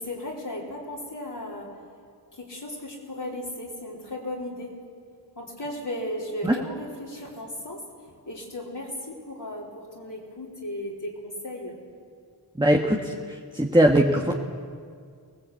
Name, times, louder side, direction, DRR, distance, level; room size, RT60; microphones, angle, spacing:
voice 1, 0.0-1.8 2.3-4.7 5.4-7.8 8.3-11.8, left 1 dB, 65° left, -6 dB, 3.9 m, -35 dB
voice 2, 12.6-13.0 13.5-14.3, right 1 dB, 10° right, 1 dB, 1.5 m, -19 dB
23.5 x 18.0 x 8.4 m, 2.2 s
wide cardioid pair, 50°, 44 cm